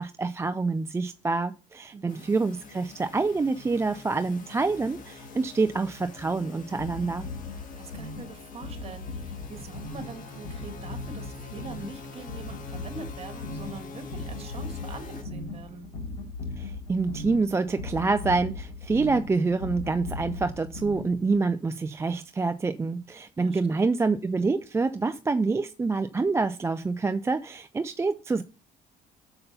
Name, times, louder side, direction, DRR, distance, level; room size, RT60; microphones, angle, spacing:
voice 1, 0.0-7.2 16.6-28.4, right 3 dB, 15° right, 0.4 m, -27 dB
voice 2, 1.9-2.3 7.8-15.9 23.4-23.9, right 4 dB, 35° right, 1.9 m, -43 dB
sound 1, 2.1-15.2, left 3 dB, 50° left, 1.6 m, -45 dB
sound 2, 6.8-21.4, left 3 dB, 85° left, 3.2 m, -38 dB
6.8 x 5.3 x 5.9 m
cardioid pair, 110°, 17 cm